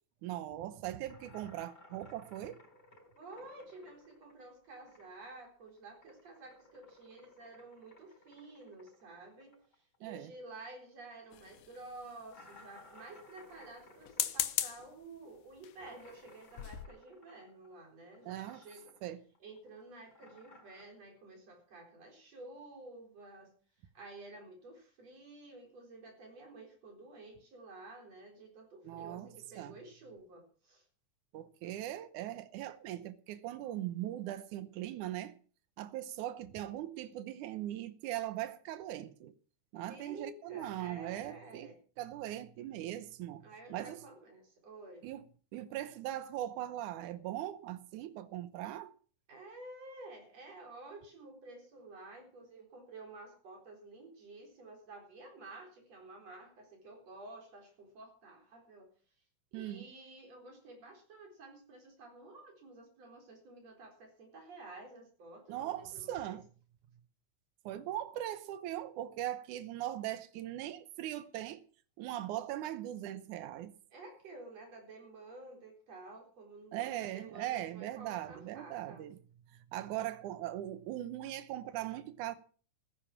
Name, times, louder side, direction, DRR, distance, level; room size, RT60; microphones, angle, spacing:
voice 1, 0.2-2.6 10.0-10.3 18.3-18.6 19.0-19.2 28.8-29.3 29.6-29.8 31.3-35.3 35.8-39.3 39.7-43.4 43.7-44.0 45.0-45.2 45.5-48.9 59.5-59.9 65.5-66.4 67.6-71.6 72.0-73.7 76.7-79.2 79.5-82.3, right 13 dB, 75° right, 2.4 m, -40 dB
sound 1, 1.1-5.4 5.6-10.7 10.9-11.0 11.4-11.5 12.3-17.9 18.1-19.1 19.3-20.8, left 1 dB, 30° left, 4.6 m, -59 dB
voice 2, 3.2-9.6 10.0-18.9 19.4-23.5 23.9-30.8 39.9-41.8 43.4-45.1 49.3-58.9 59.5-66.4 73.9-79.1, right 2 dB, 55° right, 5.1 m, -51 dB
sound 2, 11.3-12.1 14.0-14.9 15.6-15.9 16.3-16.4 16.6-16.9, left 12 dB, 85° left, 2.5 m, -36 dB
15.5 x 10.0 x 6.0 m
omnidirectional pair, 3.6 m